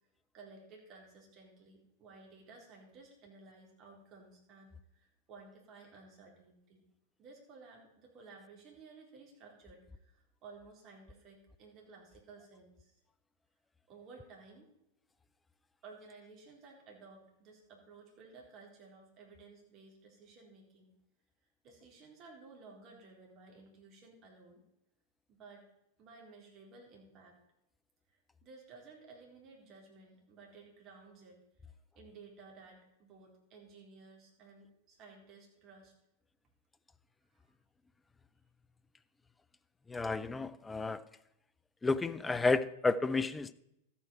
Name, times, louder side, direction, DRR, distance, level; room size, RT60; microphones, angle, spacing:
voice 1, 0.3-6.8 7.2-13.0 13.9-14.7 15.8-20.9 21.6-24.6 25.3-25.6 26.0-27.4 28.1-35.9 37.3-37.5, right 4 dB, 40° right, 0 dB, 3.8 m, -56 dB
voice 2, 39.9-41.0 41.8-43.5, left 3 dB, 15° left, 16 dB, 0.6 m, -31 dB
13.5 x 8.4 x 4.4 m, 0.83 s
hypercardioid pair, 100°, 0 cm